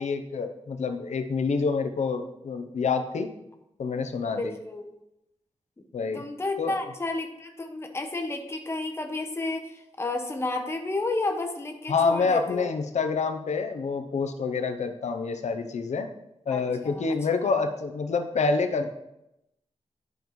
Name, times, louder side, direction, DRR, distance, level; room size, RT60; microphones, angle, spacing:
voice 1, 0.0-3.3 3.8-4.5 5.9-6.2 6.6-6.8 11.9-16.1 16.5-18.9, left 4 dB, 80° left, 7 dB, 0.7 m, -27 dB
voice 2, 4.2-4.9 6.1-12.7 16.5-17.1 17.4-17.5, left 2 dB, 20° left, 4 dB, 0.8 m, -31 dB
11.5 x 5.3 x 3.1 m, 0.87 s
wide cardioid pair, 160°, 12 cm